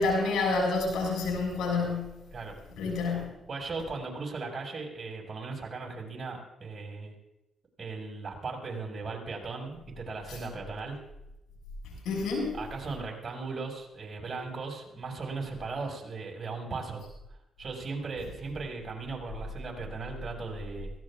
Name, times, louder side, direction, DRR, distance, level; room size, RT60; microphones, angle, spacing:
voice 1, 0.0-2.3 2.7-3.3 10.3-10.4 12.0-12.6, left 3 dB, 85° left, -1 dB, 6.7 m, -28 dB
voice 2, 3.5-7.1 7.8-11.0 12.5-17.0 17.6-20.9, right 4 dB, 45° right, 0 dB, 6.0 m, -37 dB
22.0 x 17.5 x 2.5 m, 0.90 s
supercardioid pair, 65°, 0 cm